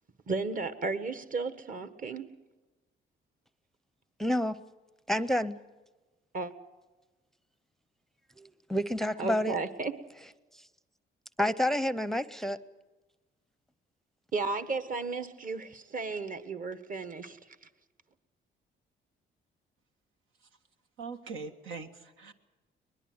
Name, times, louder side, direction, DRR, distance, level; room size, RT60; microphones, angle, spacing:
voice 1, 0.3-2.3 6.3-6.5 9.2-10.1 14.3-17.7, right 4 dB, 45° right, 11 dB, 1.6 m, -34 dB
voice 2, 4.2-4.6 5.1-5.6 8.4-9.5 11.4-12.6, left 1 dB, ahead, 15 dB, 0.7 m, -29 dB
voice 3, 21.0-22.3, right 4 dB, 85° right, 5 dB, 1.8 m, -42 dB
22.5 x 21.0 x 8.0 m, 1.2 s
cardioid pair, 90°, 20 cm